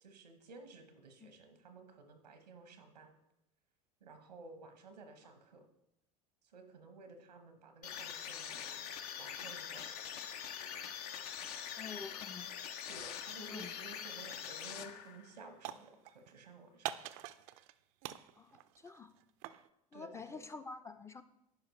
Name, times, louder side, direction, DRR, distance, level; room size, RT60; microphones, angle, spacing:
voice 1, 0.0-3.1 4.0-5.6 6.5-8.8 9.2-9.9 11.5-11.7 12.9-17.0 19.9-20.4, right 3 dB, 90° right, 7 dB, 1.0 m, -54 dB
sound 1, 7.8-15.3, left 8 dB, 70° left, 0.6 m, -44 dB
voice 2, 11.8-12.5 13.4-13.7 18.3-19.1 19.9-21.2, left 4 dB, 15° left, 9 dB, 0.4 m, -48 dB
sound 2, 14.5-14.8 15.1-16.3 16.8-17.7 18.0-19.7, right 13 dB, 60° right, 0.4 m, -45 dB
10.5 x 5.0 x 3.0 m, 0.83 s
hypercardioid pair, 75°, 20 cm